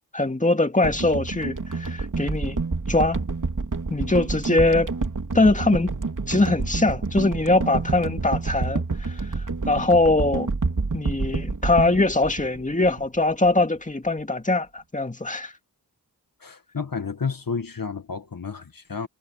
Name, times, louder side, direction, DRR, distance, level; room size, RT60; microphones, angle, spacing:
voice 1, 0.1-2.6 2.9-3.2 3.9-4.9 5.3-5.9 6.3-9.1 9.7-10.5 10.9-15.5, left 2 dB, 20° left, 2.3 m, -22 dB
sound 1, 0.8-13.2 13.5-13.6, right 3 dB, 50° right, 3.3 m, -28 dB
voice 2, 16.4-19.1, left 5 dB, 55° left, 1.9 m, -31 dB
wide cardioid pair, 55°, 40 cm